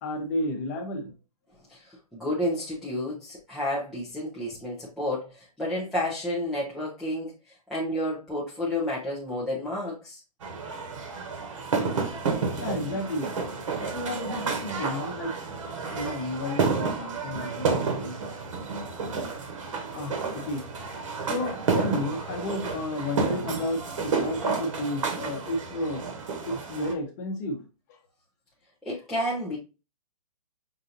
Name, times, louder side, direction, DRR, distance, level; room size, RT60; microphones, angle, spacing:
voice 1, 0.0-1.1 12.6-13.4 13.8-15.4 15.9-18.2 20.0-20.6 21.3-26.1 26.5-27.6 27.9-28.0, left 1 dB, 25° left, 4 dB, 0.8 m, -32 dB
voice 2, 1.7-7.3 7.7-10.2 28.8-29.6, left 1 dB, ahead, -8 dB, 0.4 m, -30 dB
sound 1, 10.4-26.9, right 4 dB, 55° right, 1.0 m, -30 dB
5.5 x 2.6 x 2.5 m, 0.29 s
hypercardioid pair, 160°, 20 cm